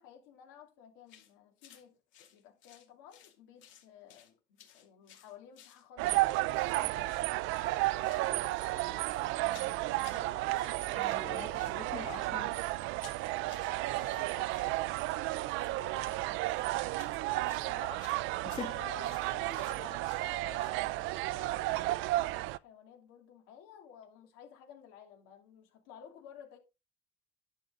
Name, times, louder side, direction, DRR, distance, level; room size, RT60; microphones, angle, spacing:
voice 1, 0.0-10.8 11.3-12.3 13.4-18.1 18.7-26.6, left 8 dB, 90° left, 2.9 m, -55 dB
sound 1, 1.1-1.3 1.6-1.8 2.1-3.3 3.6-4.3 4.6-6.8 7.1-7.3 7.6-8.3 8.5-10.3 10.5-11.3 11.5-20.8, left 10 dB, 70° left, 2.4 m, -57 dB
sound 2, 6.0-22.6, right 18 dB, 75° right, 0.5 m, -33 dB
voice 2, 10.9-12.5 18.4-18.8, left 6 dB, 30° left, 1.4 m, -43 dB
11.0 x 6.3 x 3.6 m
cardioid pair, 125°, 21 cm